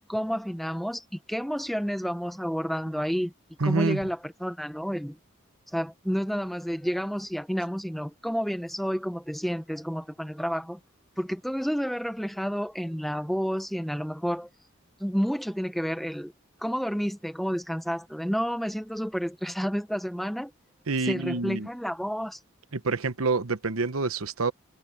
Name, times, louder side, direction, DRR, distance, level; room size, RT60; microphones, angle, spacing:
voice 1, 0.1-3.3 3.6-5.2 5.7-10.8 11.2-14.5 15.0-16.3 16.6-20.5 21.0-22.4, equal, ahead, 1.1 m, -30 dB
voice 2, 3.6-4.0 20.9-21.7 22.7-24.5, right 3 dB, 90° right, 1.1 m, -27 dB
head